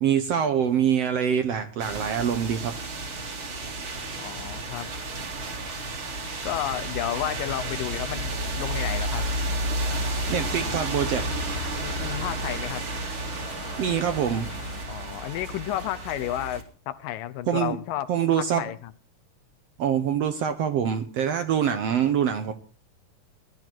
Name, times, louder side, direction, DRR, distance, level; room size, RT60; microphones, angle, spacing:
voice 1, 0.0-2.8 10.3-11.2 13.8-14.5 17.5-17.8 18.1-18.6 19.8-22.5, right 8 dB, 70° right, 9 dB, 1.6 m, -24 dB
sound 1, 1.8-16.6, right 1 dB, 40° right, 2.9 m, -31 dB
voice 2, 4.2-4.9 6.4-8.3 8.6-9.3 11.8-12.9 14.9-18.9, left 13 dB, 90° left, 14 dB, 2.6 m, -32 dB
sound 2, 9.9-14.9, left 6 dB, 55° left, 1.6 m, -42 dB
18.5 x 12.0 x 4.6 m, 0.40 s
omnidirectional pair, 3.8 m